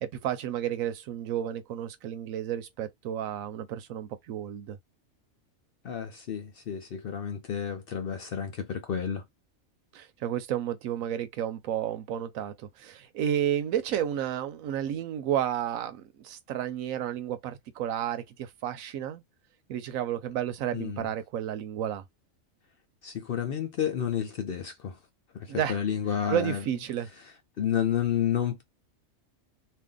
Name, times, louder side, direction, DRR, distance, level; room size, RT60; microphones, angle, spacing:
voice 1, 0.0-4.8 9.9-19.2 19.7-22.0 25.5-25.8 26.3-27.1, right 10 dB, 85° right, 1.1 m, -31 dB
voice 2, 5.8-9.2 20.7-21.1 23.0-25.0 25.3-26.6 27.6-28.6, left 9 dB, 60° left, 0.6 m, -30 dB
2.6 x 2.5 x 3.6 m
omnidirectional pair, 1.4 m